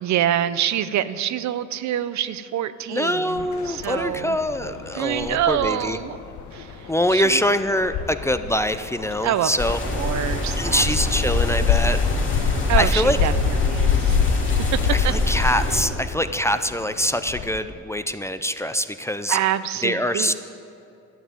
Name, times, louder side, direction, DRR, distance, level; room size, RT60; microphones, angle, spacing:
voice 1, 0.0-4.4 4.9-6.2 6.5-7.4 9.2-10.8 12.7-14.2 15.0-15.1 19.3-20.4, right 11 dB, 65° right, 14 dB, 0.6 m, -26 dB
voice 2, 2.9-6.0 6.9-9.8 10.6-12.0 12.4-12.5 12.8-13.2 14.9-19.4 19.8-20.4, equal, 10° left, 10 dB, 0.4 m, -24 dB
sound 1, 3.4-17.6, left 7 dB, 70° left, 0.9 m, -27 dB
sound 2, 9.6-15.8, left 2 dB, 40° left, 2.7 m, -25 dB
12.0 x 7.1 x 9.4 m, 2.6 s
cardioid pair, 90°, 30 cm